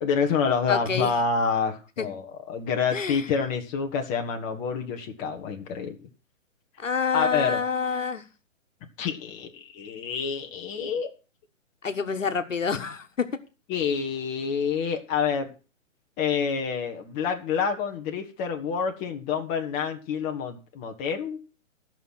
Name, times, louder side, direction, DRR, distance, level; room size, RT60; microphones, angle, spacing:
voice 1, 0.0-5.9 7.1-7.6 9.0-11.1 13.7-15.5 16.2-21.4, left 6 dB, 20° left, 3 dB, 1.2 m, -27 dB
voice 2, 0.7-1.1 2.0-2.1 2.9-3.2 6.8-8.2 11.8-13.3, left 5 dB, 75° left, 8 dB, 1.5 m, -27 dB
14.0 x 5.9 x 6.1 m, 0.33 s
figure-of-eight pair, 130°, 39 cm